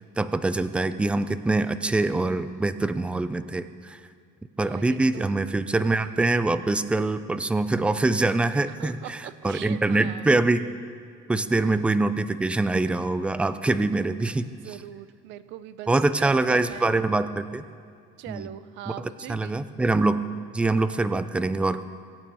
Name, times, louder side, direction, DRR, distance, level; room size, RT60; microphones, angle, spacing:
voice 1, 0.2-4.0 4.6-10.7 11.3-14.5 15.9-17.6 18.3-18.4 19.0-20.2 20.5-21.8, right 2 dB, 5° right, 12 dB, 0.3 m, -24 dB
voice 2, 4.6-5.3 8.7-10.3 14.4-15.9 16.2-16.9 18.2-19.7, right 12 dB, 65° right, 15 dB, 0.7 m, -41 dB
23.5 x 8.9 x 5.4 m, 2.5 s
cardioid pair, 170°, 21 cm